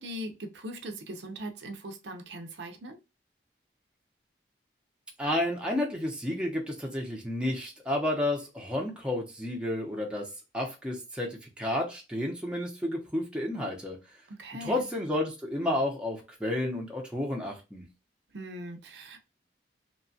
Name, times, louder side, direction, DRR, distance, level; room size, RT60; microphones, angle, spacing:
voice 1, 0.0-3.0 14.3-14.8 18.3-19.2, right 1 dB, 70° right, 0.5 m, -40 dB
voice 2, 5.2-10.3 10.5-14.0 14.6-17.8, left 1 dB, 5° right, 0.7 m, -31 dB
2.9 x 2.2 x 2.7 m
head